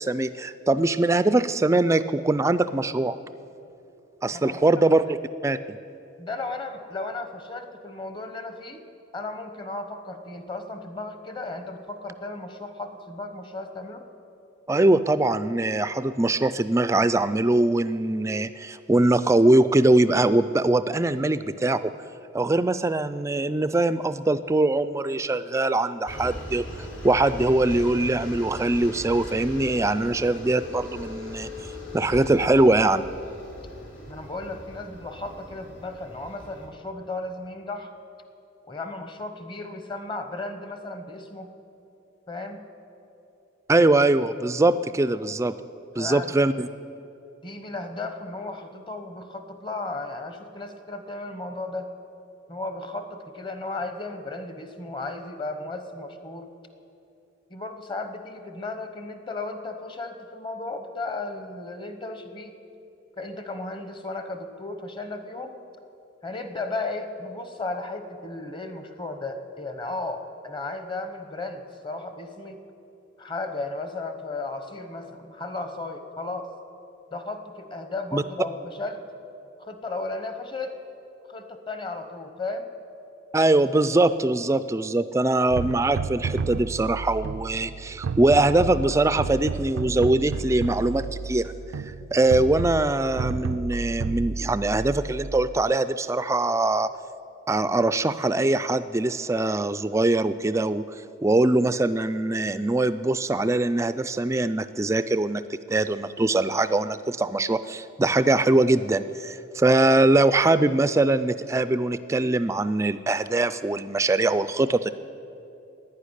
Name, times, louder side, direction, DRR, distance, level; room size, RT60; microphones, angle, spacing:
voice 1, 0.0-3.2 4.2-5.1 5.4-5.6 14.7-21.9 22.3-33.0 43.7-45.5 46.0-46.7 78.1-78.2 83.3-91.5 92.1-96.9 97.5-100.8 101.2-105.4 105.7-114.9, right 2 dB, 15° right, 13 dB, 0.3 m, -22 dB
voice 2, 4.3-4.8 6.2-8.8 9.1-14.0 34.1-37.9 38.7-41.5 42.3-42.6 46.0-46.3 47.4-51.9 52.5-56.5 57.5-62.5 63.2-65.6 66.2-72.6 73.2-76.5 77.1-79.0 79.6-80.8 81.3-82.7, left 2 dB, 25° left, 8 dB, 0.9 m, -35 dB
sound 1, 26.1-36.7, left 1 dB, 70° left, 3.0 m, -39 dB
sound 2, 85.5-95.6, right 4 dB, 85° right, 0.4 m, -32 dB
11.5 x 10.0 x 9.8 m, 2.8 s
head